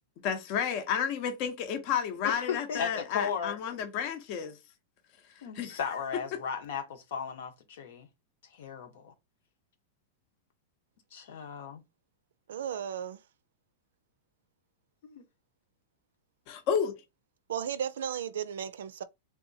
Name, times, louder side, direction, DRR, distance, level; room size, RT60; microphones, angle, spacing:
voice 1, 0.2-4.6 5.5-5.8 16.5-16.9, left 8 dB, 45° left, 0.7 m, -31 dB
voice 2, 2.2-3.8 5.4-8.1 8.5-9.1 11.1-11.8 15.0-15.2, left 7 dB, 70° left, 1.0 m, -36 dB
voice 3, 12.5-13.2 17.5-19.0, right 8 dB, 85° right, 0.4 m, -35 dB
3.5 x 2.7 x 2.7 m
supercardioid pair, 145°, 0 cm